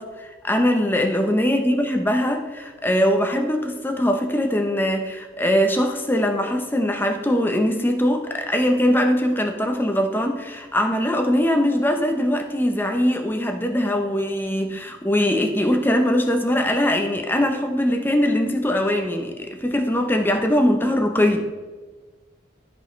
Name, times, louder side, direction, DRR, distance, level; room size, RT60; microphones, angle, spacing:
voice 1, 0.0-21.4, equal, 10° left, 4 dB, 0.7 m, -21 dB
13.0 x 5.1 x 3.3 m, 1.3 s
head